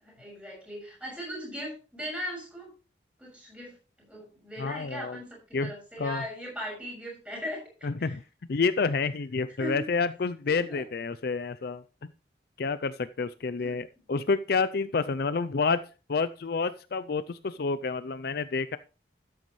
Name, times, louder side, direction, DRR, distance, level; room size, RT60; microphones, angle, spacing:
voice 1, 0.0-2.7 3.2-7.7 8.0-8.2 9.6-9.8 10.5-10.8 13.6-13.8, equal, 5° right, -2 dB, 6.9 m, -39 dB
voice 2, 4.6-5.2 5.5-5.7 6.0-6.2 7.8-8.2 8.5-11.8 12.6-15.8 16.1-18.8, left 4 dB, 55° left, 13 dB, 0.4 m, -29 dB
12.5 x 9.3 x 3.1 m, 0.33 s
head